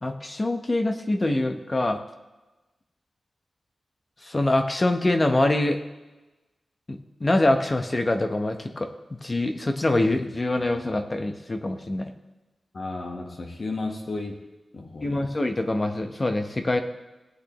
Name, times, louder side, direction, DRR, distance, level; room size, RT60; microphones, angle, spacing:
voice 1, 0.0-2.0 4.2-5.8 6.9-8.9 9.2-12.1 15.0-16.8, left 2 dB, 25° left, 6 dB, 0.8 m, -24 dB
voice 2, 12.7-14.4 14.7-15.3, left 3 dB, 45° left, 2 dB, 1.2 m, -33 dB
18.0 x 8.5 x 3.0 m, 1.1 s
wide cardioid pair, 150°, 0 cm